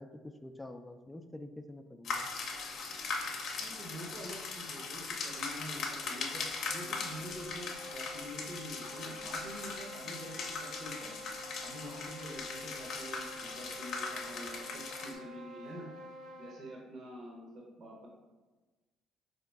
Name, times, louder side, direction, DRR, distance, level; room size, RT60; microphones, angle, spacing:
voice 1, 0.0-2.3, left 1 dB, 15° left, 7 dB, 0.3 m, -47 dB
sound 1, 2.0-15.1, left 4 dB, 60° left, 0.6 m, -40 dB
voice 2, 3.6-11.1 11.6-15.9 16.4-18.1, equal, 55° right, -2 dB, 0.9 m, -46 dB
sound 2, 6.5-16.7, left 1 dB, 80° right, 1.2 m, -49 dB
3.8 x 2.9 x 3.5 m, 1.2 s
supercardioid pair, 65°, 0 cm